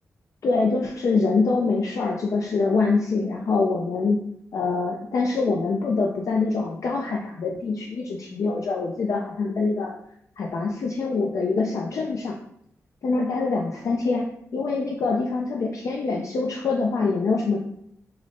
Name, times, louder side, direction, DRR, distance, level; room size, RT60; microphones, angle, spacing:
voice 1, 0.4-4.2 4.5-9.9 10.4-12.3 13.0-14.3 14.5-17.6, left 4 dB, 65° left, 0 dB, 0.4 m, -24 dB
4.8 x 2.0 x 2.6 m, 0.72 s
cardioid pair, 80°, 6 cm